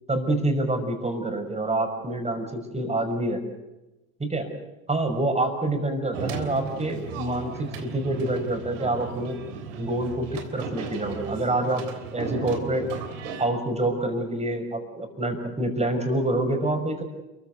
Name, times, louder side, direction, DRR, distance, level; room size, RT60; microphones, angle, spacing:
voice 1, 0.1-3.4 4.2-4.5 4.9-9.4 9.8-11.9 12.1-12.8 13.4-17.0, right 2 dB, 15° right, 5 dB, 6.1 m, -27 dB
sound 1, 6.1-13.5, right 5 dB, 65° right, 3.5 m, -36 dB
29.5 x 15.5 x 8.2 m, 1.0 s
figure-of-eight pair, 65°, 40 cm